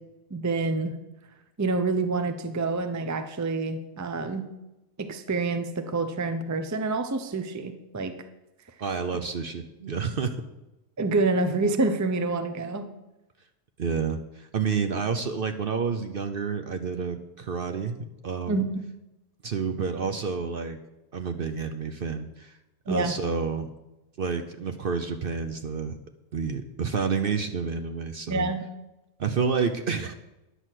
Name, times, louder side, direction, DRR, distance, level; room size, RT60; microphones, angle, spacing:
voice 1, 0.3-0.9 1.6-4.5 5.0-8.1 11.0-12.9 18.5-18.6 22.9-23.1 28.3-28.6, right 3 dB, 20° right, 9 dB, 0.5 m, -27 dB
voice 2, 8.8-10.3 13.8-18.7 19.4-20.8 21.1-22.5 22.9-23.7 24.2-26.0 26.3-28.5 29.2-30.1, right 5 dB, 55° right, 8 dB, 0.7 m, -29 dB
10.0 x 6.3 x 7.5 m, 0.96 s
omnidirectional pair, 1.4 m